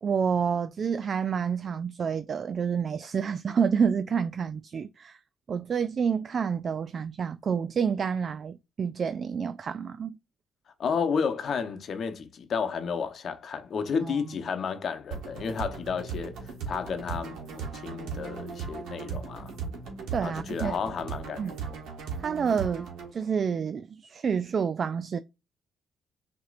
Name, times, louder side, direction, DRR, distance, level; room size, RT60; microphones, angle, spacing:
voice 1, 0.0-5.2 5.5-10.2 14.0-14.2 20.1-20.8 21.4-21.6 22.2-25.2, right 6 dB, 50° right, 0.3 m, -28 dB
voice 2, 10.8-19.5 20.2-21.5, left 6 dB, 60° left, 0.8 m, -32 dB
sound 1, 15.1-23.1, right 5 dB, 85° right, 1.4 m, -37 dB
6.2 x 3.0 x 2.4 m
cardioid pair, 90°, 0 cm